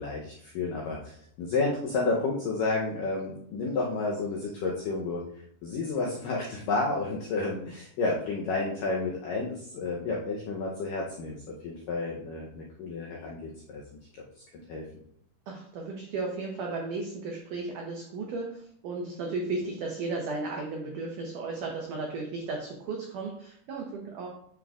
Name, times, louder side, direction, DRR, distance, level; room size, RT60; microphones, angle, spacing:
voice 1, 0.0-5.2 5.6-13.8 14.1-14.2 14.7-14.8, left 3 dB, 90° left, -2 dB, 1.9 m, -31 dB
voice 2, 15.5-18.5 18.8-24.3, right 3 dB, 85° right, 0 dB, 1.8 m, -34 dB
9.1 x 6.1 x 2.4 m, 0.68 s
omnidirectional pair, 5.0 m